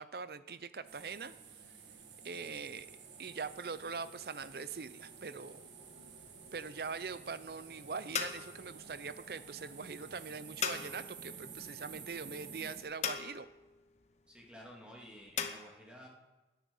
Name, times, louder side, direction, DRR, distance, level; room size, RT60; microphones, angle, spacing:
voice 1, 0.0-1.3 2.2-2.9 3.2-5.7 6.5-13.5, right 5 dB, 60° right, 14 dB, 0.6 m, -42 dB
sound 1, 0.9-12.8, right 5 dB, 90° right, 1.7 m, -51 dB
sound 2, 5.9-15.5, left 7 dB, 40° left, 1.0 m, -42 dB
voice 2, 14.3-16.1, equal, 5° right, -2 dB, 2.7 m, -52 dB
17.0 x 10.0 x 5.5 m, 1.1 s
head